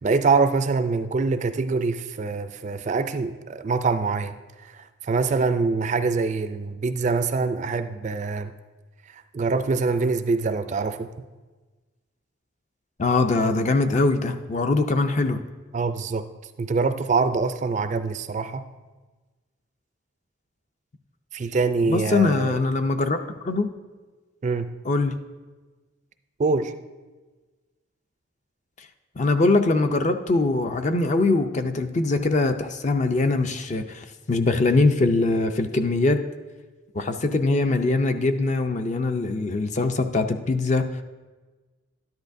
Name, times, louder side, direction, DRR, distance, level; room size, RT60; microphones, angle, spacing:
voice 1, 0.0-4.4 4.7-8.5 9.3-11.1 15.7-16.3 16.6-18.7 21.3-22.6 24.4-24.7 26.4-26.7, right 4 dB, 35° right, 10 dB, 0.4 m, -24 dB
voice 2, 13.0-15.4 21.8-23.7 24.8-25.1 29.2-36.2 36.9-41.0, left 3 dB, 35° left, 8 dB, 0.5 m, -22 dB
13.0 x 10.5 x 2.6 m, 1.3 s
head